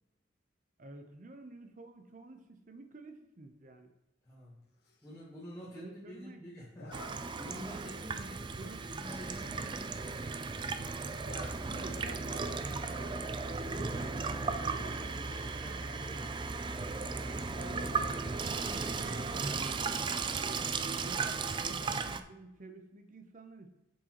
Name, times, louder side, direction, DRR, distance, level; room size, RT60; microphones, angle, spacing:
voice 1, 0.8-3.9 5.7-6.4 8.6-8.8 11.7-14.1 14.6-15.1 15.6-16.0 17.5-23.7, right 2 dB, 40° right, 6 dB, 0.8 m, -50 dB
voice 2, 4.2-4.7 5.0-10.1 13.8-16.4, equal, 15° left, -7 dB, 1.3 m, -49 dB
Zipper (clothing), 4.8-5.2 6.7-7.1 7.7-7.9 8.2-8.3 8.5-8.6 8.9-9.5 9.9-10.0 10.2-10.7 11.0-11.5 11.9-12.0 13.3-13.7, left 2 dB, 55° left, 1.5 m, -52 dB
Water tap faucet / Sink (filling or washing), 6.9-22.2, right 4 dB, 25° right, 0.3 m, -36 dB
sound 1, 11.2-18.4, right 1 dB, 35° left, 1.7 m, -45 dB
8.0 x 6.4 x 3.0 m, 0.93 s
head